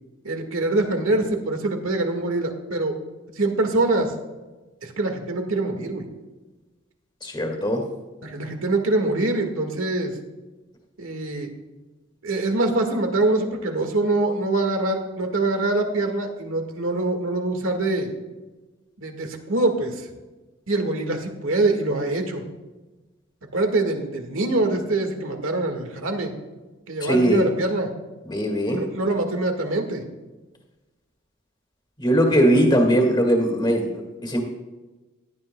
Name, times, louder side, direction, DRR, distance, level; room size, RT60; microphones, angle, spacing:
voice 1, 0.2-2.9 3.4-4.1 4.8-6.1 8.2-10.1 11.0-11.5 12.2-18.1 19.0-20.0 20.7-22.4 23.5-26.3 26.9-27.9 28.7-30.0 32.5-32.6, right 2 dB, 80° right, 4 dB, 1.8 m, -24 dB
voice 2, 7.2-7.8 27.0-27.4 28.2-28.8 32.0-34.4, equal, 20° left, 2 dB, 1.9 m, -20 dB
17.5 x 12.0 x 2.3 m, 1.2 s
head